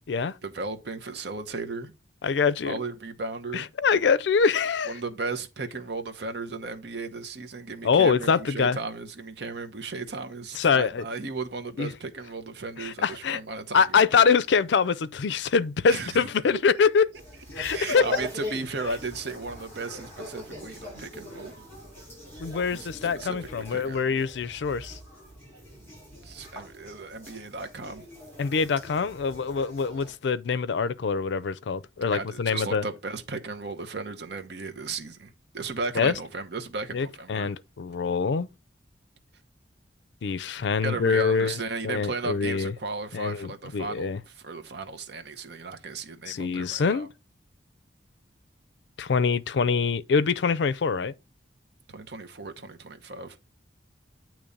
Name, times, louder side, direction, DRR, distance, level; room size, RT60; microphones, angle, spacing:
voice 1, 0.4-1.9 2.6-3.7 4.9-13.8 14.1-14.2 15.9-16.6 17.7-21.5 22.7-22.9 23.1-24.2 26.2-28.0 32.1-37.5 40.8-47.1 51.9-53.4, right 3 dB, 65° right, 0.9 m, -35 dB
voice 2, 2.2-2.7 3.5-4.9 7.8-8.8 10.5-11.0 11.8-11.9 12.8-13.4 13.7-17.1 17.6-18.1 22.4-25.0 28.4-32.8 36.0-36.1 36.9-38.5 40.2-41.6 41.8-42.7 43.1-44.2 46.3-47.1 49.0-51.1, left 5 dB, 70° left, 0.4 m, -24 dB
sound 1, 17.1-30.1, equal, 10° left, 4.9 m, -42 dB
8.5 x 3.1 x 5.2 m
head